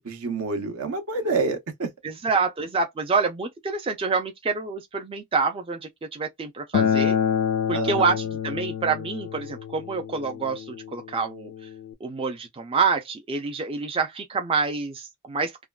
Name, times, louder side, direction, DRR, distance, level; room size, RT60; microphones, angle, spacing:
voice 1, 0.0-1.9 7.7-8.1, right 3 dB, 75° right, 0.9 m, -28 dB
voice 2, 2.0-5.8 6.1-7.2 7.7-11.5 12.0-15.6, right 4 dB, 25° right, 0.3 m, -27 dB
Acoustic guitar, 6.7-11.9, left 8 dB, 60° left, 0.3 m, -27 dB
3.4 x 2.2 x 2.3 m
head